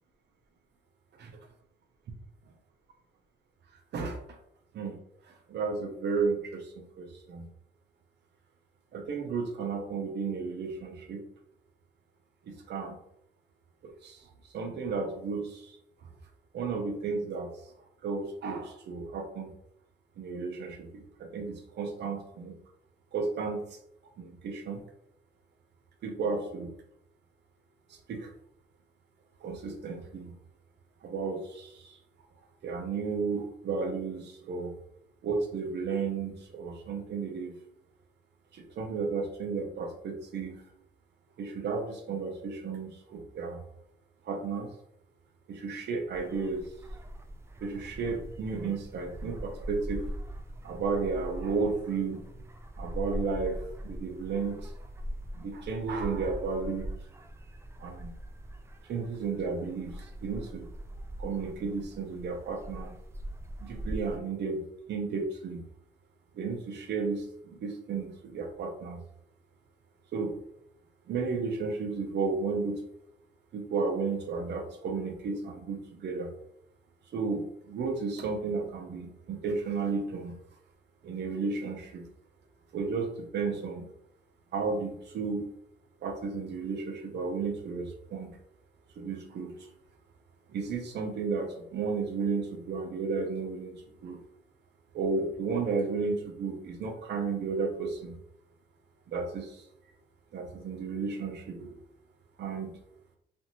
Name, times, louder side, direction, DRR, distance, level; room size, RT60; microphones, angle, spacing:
voice 1, 5.5-7.5 8.9-11.2 12.5-13.0 14.0-14.2 14.5-15.7 16.5-17.5 18.0-19.5 20.2-21.0 21.3-22.5 23.1-23.7 24.2-24.8 26.0-26.7 28.1-28.3 29.4-30.3 31.0-32.0 32.6-34.7 35.2-37.5 38.5-40.6 41.4-43.6 44.2-44.7 45.5-46.6 47.6-50.0 50.6-52.2 52.8-53.6 53.8-54.7 55.3-56.9 57.8-58.1 58.9-60.7 61.2-62.9 63.6-64.6 64.9-65.6 66.3-69.0 70.1-70.4 71.1-72.8 73.5-76.3 77.1-80.3 81.0-82.0 82.7-83.9 84.5-85.5 86.0-88.4 89.0-89.5 90.5-94.2 94.9-98.1 99.1-99.6 100.3-101.8 102.4-102.8, right 4 dB, 60° right, 4 dB, 0.7 m, -33 dB
sound 1, 46.1-64.2, equal, 15° right, 0.3 m, -41 dB
2.9 x 2.6 x 2.6 m, 0.75 s
cardioid pair, 90°, 20 cm